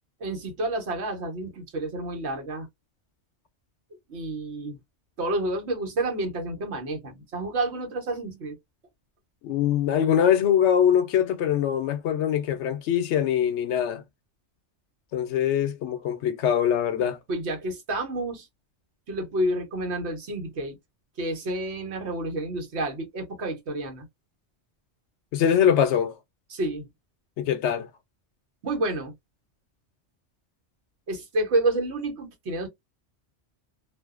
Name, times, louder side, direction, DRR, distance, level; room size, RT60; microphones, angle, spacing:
voice 1, 0.2-2.7 4.1-4.8 5.2-8.5 17.3-18.5 19.1-20.8 21.2-24.1 26.5-26.9 28.6-29.1 31.1-32.7, right 2 dB, 70° right, 1.2 m, -29 dB
voice 2, 9.4-14.0 15.1-17.2 25.3-26.1 27.4-27.9, left 9 dB, 80° left, 0.9 m, -23 dB
2.5 x 2.1 x 2.3 m
omnidirectional pair, 1.2 m